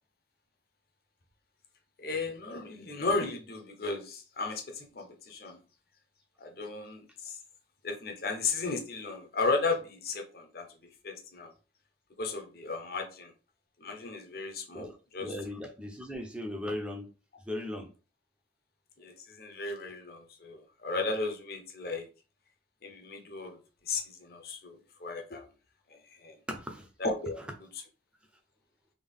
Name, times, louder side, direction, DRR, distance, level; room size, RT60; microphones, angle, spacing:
voice 1, 2.0-5.6 6.4-7.4 7.8-11.5 12.2-13.3 13.8-15.3 19.0-22.1 22.8-23.6 23.9-25.5 25.9-26.4 27.0-27.8, left 3 dB, 55° left, 0.7 m, -35 dB
voice 2, 15.2-17.1 17.5-17.9 26.5-26.9, left 1 dB, 5° right, 0.6 m, -37 dB
3.7 x 2.3 x 3.5 m
head